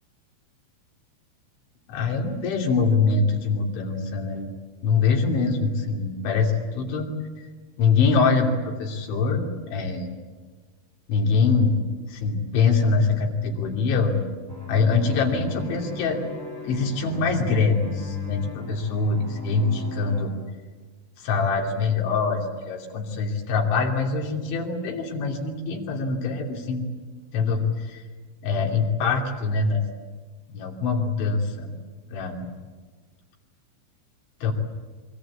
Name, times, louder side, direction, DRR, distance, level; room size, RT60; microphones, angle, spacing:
voice 1, 1.9-4.5 4.8-7.1 7.8-10.1 11.1-11.8 12.1-14.2 14.7-16.2 16.6-20.3 21.2-26.9 27.3-28.0 28.4-29.8 30.5-31.7 32.1-32.5 34.4-34.5, left 4 dB, 70° left, 1 dB, 5.2 m, -24 dB
sound 1, 14.5-20.2, left 4 dB, 5° left, 4.0 m, -35 dB
26.0 x 23.0 x 8.4 m, 1.4 s
omnidirectional pair, 5.6 m